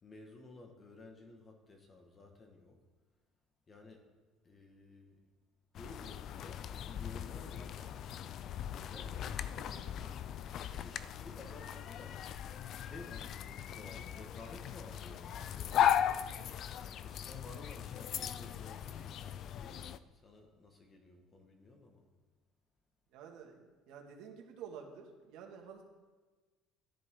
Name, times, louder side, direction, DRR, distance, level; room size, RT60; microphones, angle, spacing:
voice 1, 0.0-2.8 3.7-4.1 4.4-5.2 5.7-8.0 8.9-9.3 10.0-10.4 10.7-12.2 12.5-16.2 16.8-22.1, left 2 dB, 25° left, 4 dB, 1.7 m, -54 dB
sound 1, 5.7-20.0, left 10 dB, 45° left, 0.4 m, -38 dB
voice 2, 9.6-10.1 23.1-25.8, right 7 dB, 65° right, 1 dB, 2.1 m, -51 dB
13.5 x 11.0 x 3.9 m, 1.3 s
cardioid pair, 140°, 0 cm